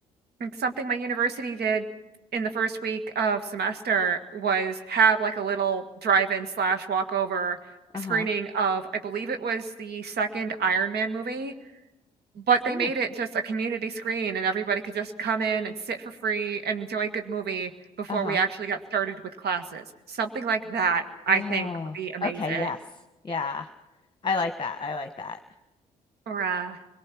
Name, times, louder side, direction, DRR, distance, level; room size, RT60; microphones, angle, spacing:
voice 1, 0.4-1.9 2.3-7.6 7.9-11.5 12.4-17.7 18.0-22.7 26.3-26.8, right 5 dB, 55° right, 7 dB, 1.8 m, -27 dB
voice 2, 7.9-8.3 12.7-12.9 18.1-18.4 21.3-22.8 23.2-23.7 24.2-25.4, left 4 dB, 25° left, 6 dB, 1.3 m, -31 dB
25.0 x 22.0 x 6.1 m, 1.0 s
hypercardioid pair, 45°, 19 cm